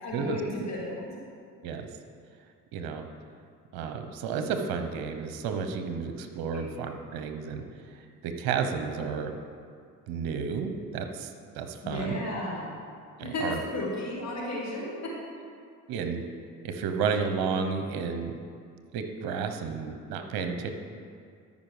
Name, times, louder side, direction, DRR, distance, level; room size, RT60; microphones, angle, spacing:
voice 1, 0.0-1.2 6.5-6.6 11.8-12.7 13.2-15.1, left 1 dB, 45° left, -3 dB, 1.8 m, -33 dB
voice 2, 2.7-3.0 3.7-9.4 10.1-12.2 13.2-13.6 15.9-16.3 16.6-18.4 18.9-20.7, right 6 dB, 65° right, 6 dB, 0.9 m, -32 dB
13.5 x 5.4 x 3.3 m, 2.2 s
hypercardioid pair, 55°, 40 cm